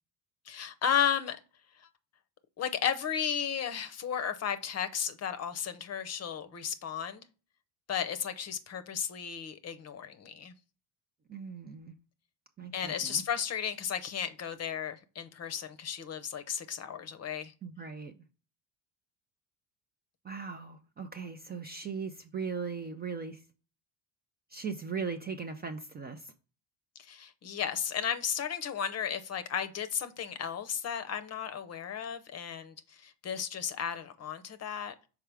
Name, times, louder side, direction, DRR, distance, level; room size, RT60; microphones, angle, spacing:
voice 1, 0.5-1.4 1.8-1.9 2.6-7.3 7.9-10.5 12.7-17.5 27.0-34.9, left 8 dB, 35° left, 0.7 m, -34 dB
voice 2, 11.3-11.9 12.6-13.2 17.6-18.2 20.2-23.4 24.5-26.3, right 5 dB, 25° right, 0.4 m, -39 dB
5.9 x 4.7 x 3.4 m
cardioid pair, 125°, 45 cm